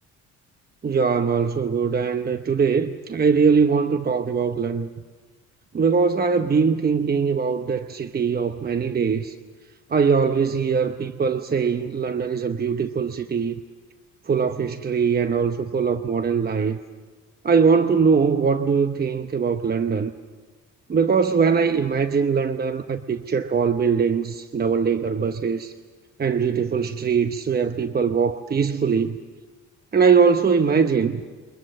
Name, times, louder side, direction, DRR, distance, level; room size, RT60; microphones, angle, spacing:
voice 1, 0.8-4.9 5.7-9.3 9.9-13.6 14.3-16.8 17.4-20.1 20.9-25.7 26.2-29.2 29.9-31.2, right 5 dB, 30° right, 0.9 m, -21 dB
28.5 x 23.5 x 6.7 m
cardioid pair, 90°, 30 cm